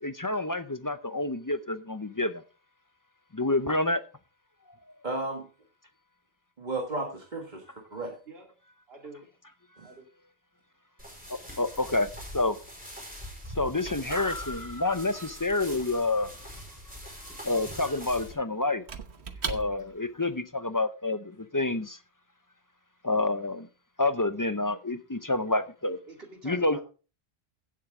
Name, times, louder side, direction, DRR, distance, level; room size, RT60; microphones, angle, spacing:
voice 1, 0.0-2.4 3.3-4.0 11.3-12.1 12.3-12.6 13.6-16.3 17.4-18.8 19.5-22.0 23.0-23.7 24.0-26.0 26.4-26.8, left 2 dB, 25° left, 0.5 m, -28 dB
voice 2, 5.0-5.5 6.6-8.2 9.8-9.9, right 2 dB, 45° right, 1.7 m, -34 dB
voice 3, 8.9-9.3 9.8-10.1 26.1-26.8, right 3 dB, 65° right, 2.8 m, -47 dB
sound 1, 11.0-18.3, equal, 10° right, 4.7 m, -43 dB
Squeak / Wood, 12.9-20.1, right 6 dB, 90° right, 1.3 m, -43 dB
16.0 x 7.5 x 3.6 m
omnidirectional pair, 1.1 m